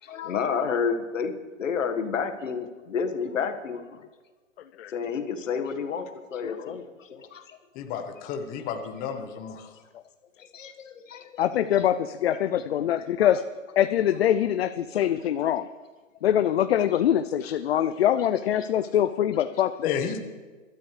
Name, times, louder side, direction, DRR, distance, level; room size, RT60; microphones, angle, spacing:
voice 1, 0.0-3.8 4.9-7.6 9.4-9.6 10.4-11.5 12.3-12.9 18.6-18.7, left 6 dB, 70° left, 6 dB, 1.8 m, -31 dB
voice 2, 7.7-9.7 19.8-20.2, left 7 dB, 20° left, 5 dB, 1.2 m, -32 dB
voice 3, 11.4-13.4 13.8-15.7 16.2-19.9, left 10 dB, 50° left, 10 dB, 0.6 m, -24 dB
23.0 x 12.5 x 3.3 m, 1.3 s
hypercardioid pair, 140°, 40 cm